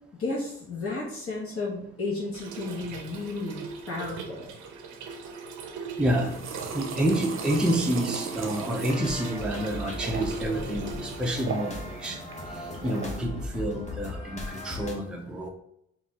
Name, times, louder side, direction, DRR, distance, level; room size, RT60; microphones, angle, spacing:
voice 1, 0.1-4.5, left 3 dB, 50° left, -3 dB, 1.2 m, -33 dB
Trickle dribble / Fill (with liquid), 2.3-11.3, right 4 dB, 85° right, 0.6 m, -41 dB
voice 2, 6.0-6.3 6.7-12.3 12.8-15.5, right 1 dB, 5° right, 1 dB, 0.5 m, -28 dB
sound 1, 6.1-13.2, right 5 dB, 45° right, 0.7 m, -38 dB
sound 2, 8.9-15.0, left 1 dB, 25° left, 1.0 m, -38 dB
4.0 x 2.5 x 3.7 m, 0.76 s
cardioid pair, 90°, 30 cm